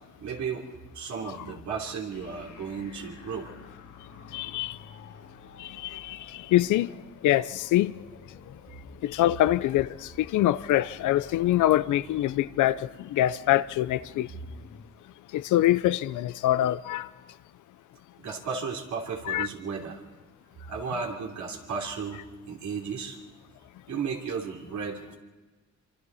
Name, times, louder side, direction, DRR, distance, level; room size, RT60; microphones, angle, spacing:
voice 1, 0.2-0.7 0.9-3.5 18.2-20.0 20.7-22.2 22.5-23.2 23.9-25.2, right 5 dB, 70° right, 3.3 m, -34 dB
sound 1, 2.1-14.9, left 6 dB, 60° left, 2.2 m, -50 dB
voice 2, 4.3-4.7 5.8-6.2 6.5-6.9 7.2-7.9 9.0-9.9 10.2-12.8 13.1-14.3 15.3-17.1 19.3-19.5, left 14 dB, 80° left, 0.7 m, -24 dB
25.5 x 25.0 x 4.2 m
cardioid pair, 90°, 30 cm